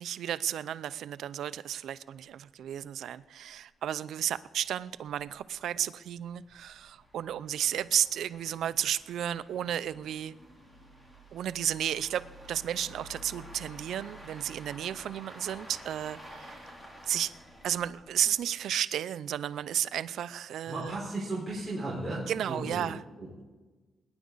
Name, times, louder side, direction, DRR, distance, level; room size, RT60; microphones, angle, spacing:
voice 1, 0.0-10.3 11.3-16.6 17.0-17.3 17.6-21.0 22.3-23.0, right 10 dB, 75° right, 15 dB, 0.5 m, -33 dB
sound 1, 3.2-3.3 3.6-3.7 4.3-18.7, right 1 dB, 15° left, 3.0 m, -51 dB
voice 2, 20.7-22.9 23.2-23.4, right 2 dB, 5° right, -8 dB, 4.5 m, -35 dB
21.5 x 10.5 x 4.0 m, 1.2 s
cardioid pair, 140°, 0 cm